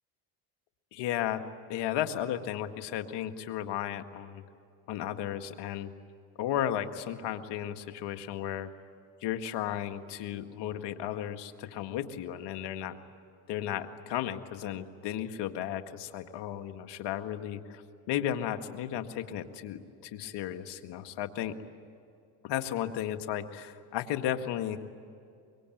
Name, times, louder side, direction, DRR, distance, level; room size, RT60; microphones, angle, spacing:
voice 1, 0.9-1.4 1.7-4.4 4.9-5.9 6.4-8.7 9.2-13.0 13.5-17.8 18.1-21.6 22.4-24.8, left 11 dB, 70° left, 7 dB, 1.9 m, -34 dB
25.0 x 23.0 x 9.2 m, 2.4 s
supercardioid pair, 95°, 43 cm